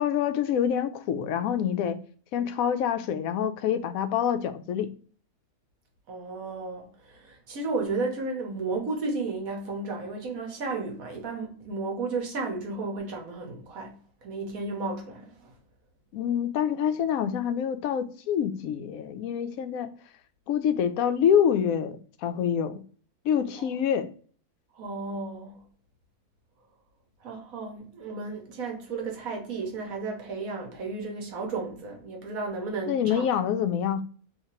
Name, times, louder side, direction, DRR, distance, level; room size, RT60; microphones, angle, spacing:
voice 1, 0.0-2.0 2.3-4.9 16.1-19.9 20.5-22.8 23.2-24.1 32.9-34.0, left 8 dB, 70° left, 0.9 m, -26 dB
voice 2, 6.1-13.9 14.2-15.5 23.6-23.7 24.7-25.6 27.2-33.5, right 3 dB, 65° right, 1.5 m, -33 dB
3.2 x 2.8 x 4.3 m
omnidirectional pair, 1.6 m